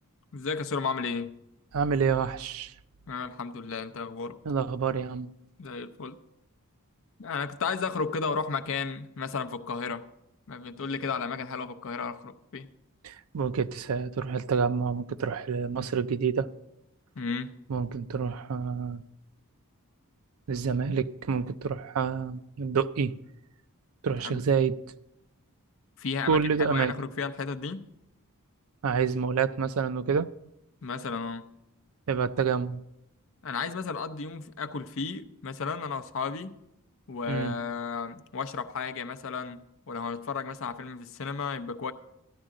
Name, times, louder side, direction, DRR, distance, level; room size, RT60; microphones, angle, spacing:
voice 1, 0.3-1.3 3.1-4.4 5.6-6.2 7.2-10.0 10.5-12.7 17.2-17.5 24.2-24.4 26.0-27.8 30.8-31.4 33.4-36.5 37.1-41.9, left 5 dB, 65° left, 0.6 m, -33 dB
voice 2, 1.7-2.7 4.5-5.3 13.0-16.5 17.7-19.0 20.5-23.1 24.0-24.8 26.3-26.9 28.8-30.3 32.1-32.8 37.3-37.6, right 6 dB, 70° right, 0.4 m, -28 dB
13.5 x 10.0 x 3.7 m
head